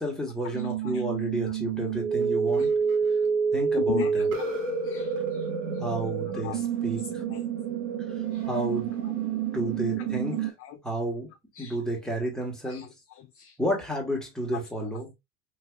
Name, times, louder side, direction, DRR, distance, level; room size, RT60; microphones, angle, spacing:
voice 1, 0.0-2.7 3.5-4.3 5.8-7.3 8.5-8.9 9.5-10.5 10.8-11.3 11.6-12.9 13.6-15.1, right 1 dB, ahead, 1.5 m, -31 dB
sound 1, 0.5-10.5, right 6 dB, 55° right, 1.3 m, -28 dB
voice 2, 3.9-4.5 4.8-5.5 6.3-6.6 7.3-7.4 8.3-8.4 10.6-10.8 11.6-11.8 12.7-12.9 13.2-13.6, left 13 dB, 40° left, 0.4 m, -38 dB
3.3 x 3.0 x 2.3 m
hypercardioid pair, 95°, 38 cm